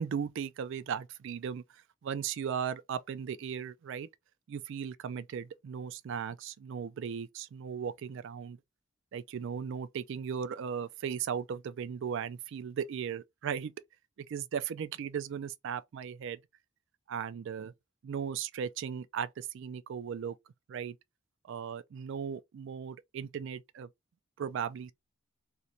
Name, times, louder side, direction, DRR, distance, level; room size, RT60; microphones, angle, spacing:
voice 1, 0.0-1.6 2.0-4.1 4.5-8.6 9.1-13.7 14.3-16.4 17.1-17.7 18.0-20.3 20.7-21.0 21.5-23.9 24.4-24.9, right 7 dB, 60° right, 0.3 m, -37 dB
2.5 x 2.1 x 2.8 m
head